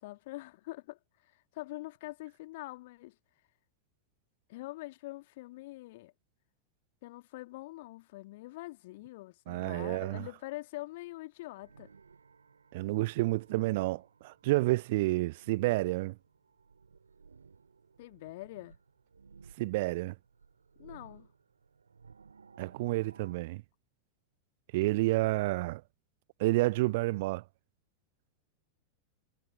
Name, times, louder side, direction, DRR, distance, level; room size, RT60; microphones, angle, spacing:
voice 1, 0.0-3.2 4.5-6.1 7.0-11.9 18.0-18.8 20.8-21.3, left 19 dB, 50° left, 1.8 m, -44 dB
voice 2, 9.5-10.3 12.7-16.2 19.6-20.2 22.6-23.6 24.7-25.8 26.4-27.4, right 20 dB, 50° right, 0.4 m, -29 dB
sound 1, 11.5-23.4, right 5 dB, 75° right, 3.3 m, -58 dB
figure-of-eight pair, 90°, 0 cm